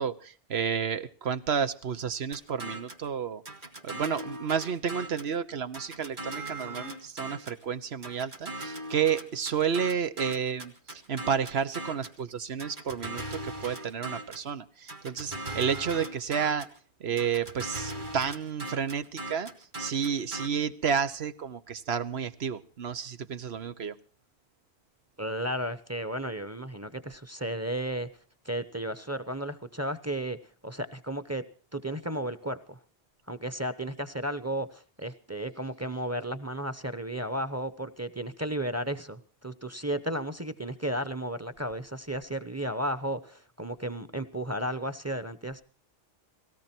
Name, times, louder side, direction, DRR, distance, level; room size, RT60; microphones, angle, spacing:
voice 1, 0.0-3.4 3.8-16.7 17.0-19.5 19.8-23.9, right 7 dB, 90° right, 12 dB, 1.3 m, -31 dB
sound 1, 2.3-3.1 3.5-5.3 5.7-7.6 8.0-12.2 12.6-14.5 14.9-16.8 17.2-20.5, right 2 dB, 50° right, 2.5 m, -39 dB
voice 2, 25.2-28.1 28.4-30.4 30.6-31.4 31.7-32.8 33.3-45.6, right 1 dB, 15° right, 12 dB, 0.8 m, -33 dB
18.5 x 17.0 x 4.4 m, 0.41 s
omnidirectional pair, 1.0 m